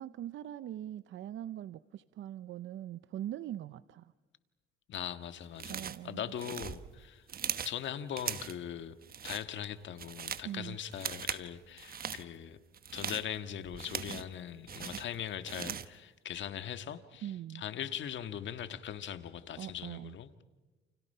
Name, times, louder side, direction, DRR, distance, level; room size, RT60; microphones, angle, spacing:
voice 1, 0.0-4.1 5.7-6.2 10.4-10.8 17.2-17.6 19.6-20.2, right 12 dB, 75° right, 0.7 m, -42 dB
voice 2, 4.9-7.2 7.6-8.9 9.2-12.6 12.9-20.3, left 9 dB, 70° left, 1.7 m, -40 dB
sound 1, 5.6-6.1 6.4-7.8 8.2-8.6 9.0-9.4 9.8-10.5 10.9-11.5 11.8-12.2 12.7-14.3 14.7-16.0, right 8 dB, 50° right, 1.2 m, -39 dB
29.5 x 29.5 x 5.6 m
cardioid pair, 90°, 20 cm